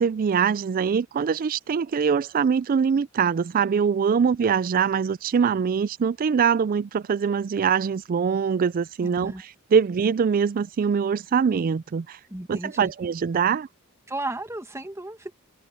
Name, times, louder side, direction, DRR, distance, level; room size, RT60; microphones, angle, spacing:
voice 1, 0.0-12.2 12.5-13.7, right 6 dB, 40° right, 0.3 m, -23 dB
voice 2, 12.3-12.9 14.1-15.3, right 2 dB, 15° right, 1.7 m, -34 dB
head